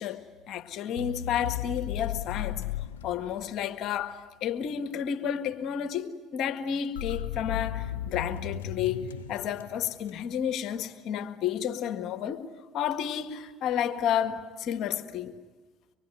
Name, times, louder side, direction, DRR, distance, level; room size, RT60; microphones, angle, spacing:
voice 1, 0.0-2.6 3.0-12.5 12.7-15.3, left 9 dB, 60° left, 1.8 m, -31 dB
sound 1, 1.0-3.9 6.9-10.4, left 10 dB, 90° left, 0.8 m, -35 dB
25.0 x 23.0 x 9.4 m
hypercardioid pair, 60°, 0 cm